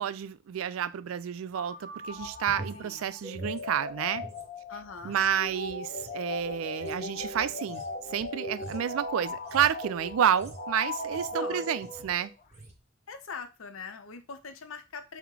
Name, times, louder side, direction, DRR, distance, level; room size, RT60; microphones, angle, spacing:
voice 1, 0.0-4.2 5.0-7.8 8.1-12.3, right 9 dB, 85° right, 0.3 m, -30 dB
sound 1, 1.5-12.3, left 2 dB, 35° left, 0.6 m, -38 dB
sound 2, 2.1-4.5 4.8-11.5 11.8-12.2 12.5-12.8, right 2 dB, 30° right, 0.7 m, -47 dB
voice 2, 2.7-3.1 4.7-5.2 11.4-11.7 13.1-15.2, left 5 dB, 85° left, 0.6 m, -42 dB
4.5 x 2.1 x 3.7 m
head